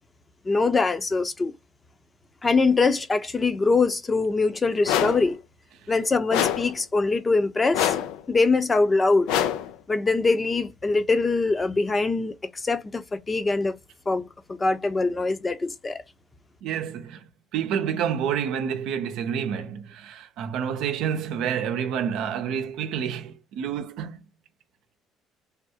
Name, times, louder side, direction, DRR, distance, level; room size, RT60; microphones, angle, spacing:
voice 1, 0.5-1.5 2.4-5.4 5.9-8.0 8.3-9.3 9.9-13.8 14.1-16.0, left 3 dB, 25° left, 0.7 m, -23 dB
sound 1, 4.8-5.3 6.3-6.8 7.7-8.2 9.3-9.7, left 10 dB, 80° left, 0.4 m, -25 dB
voice 2, 16.6-24.2, right 8 dB, 75° right, 0.6 m, -29 dB
3.5 x 2.3 x 2.8 m
supercardioid pair, 75°, 0 cm